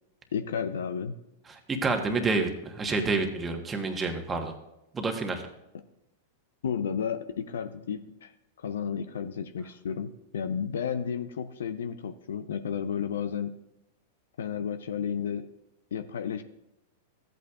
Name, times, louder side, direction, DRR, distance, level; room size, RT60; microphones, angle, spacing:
voice 1, 0.3-1.2 6.6-8.3 8.6-13.5 14.4-15.5 15.9-16.4, left 7 dB, 75° left, 10 dB, 0.5 m, -32 dB
voice 2, 1.5-4.5 4.9-5.4, right 3 dB, 20° right, 4 dB, 1.2 m, -28 dB
14.0 x 8.3 x 2.4 m, 0.87 s
hypercardioid pair, 105°, 0 cm